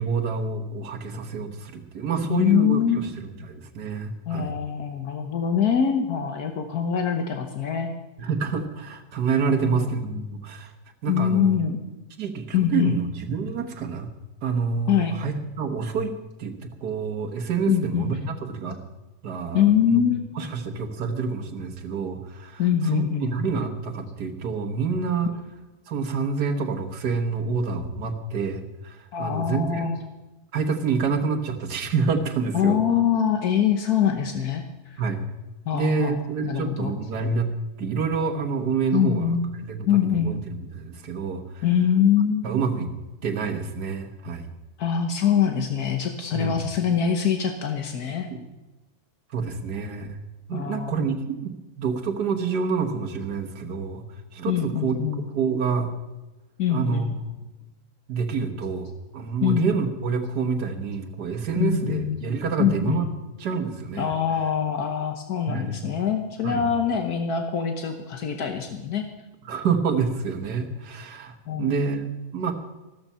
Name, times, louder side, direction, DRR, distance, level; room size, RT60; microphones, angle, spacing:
voice 1, 0.0-4.5 8.2-10.7 11.0-11.6 12.2-14.1 14.4-18.8 19.2-20.0 20.4-25.3 25.9-29.9 30.5-32.8 35.0-35.2 35.7-37.5 37.8-41.6 42.4-42.9 43.2-44.4 46.3-46.6 48.3-48.4 49.3-54.1 54.3-55.0 55.3-55.9 56.7-57.4 58.1-63.1 63.4-64.1 65.5-65.8 66.4-66.6 69.5-72.5, right 5 dB, 90° right, 4 dB, 1.9 m, -28 dB
voice 2, 2.3-3.0 4.3-7.9 9.5-9.9 11.1-11.8 12.5-13.0 14.9-15.1 17.7-18.2 19.5-20.4 22.6-23.4 29.1-30.0 32.5-35.0 35.7-36.2 36.4-36.9 38.9-39.5 39.9-40.3 41.6-42.5 44.8-48.3 50.5-51.0 54.5-55.3 56.6-57.1 59.4-59.7 61.5-62.2 62.6-63.0 64.0-69.1 71.5-71.9, left 8 dB, 75° left, 5 dB, 1.6 m, -24 dB
14.5 x 13.5 x 5.6 m, 1.1 s
omnidirectional pair, 1.7 m